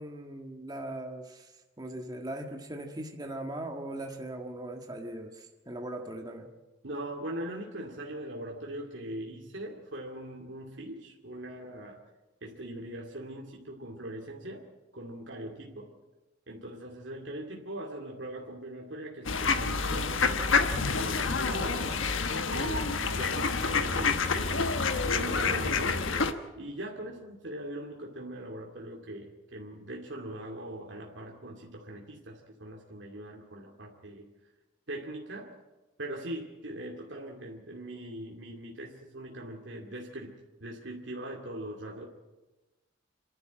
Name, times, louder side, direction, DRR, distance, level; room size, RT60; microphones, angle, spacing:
voice 1, 0.0-1.5 1.8-6.5, right 1 dB, 20° right, 2 dB, 1.6 m, -39 dB
voice 2, 6.8-12.0 12.4-15.9 16.5-22.1 22.5-26.1 26.6-34.3 34.9-35.5 36.0-40.4 40.6-42.1, right 1 dB, 70° right, -1 dB, 2.4 m, -41 dB
sound 1, 19.3-26.3, left 4 dB, 85° left, 1.3 m, -28 dB
27.0 x 11.5 x 8.8 m, 1.1 s
head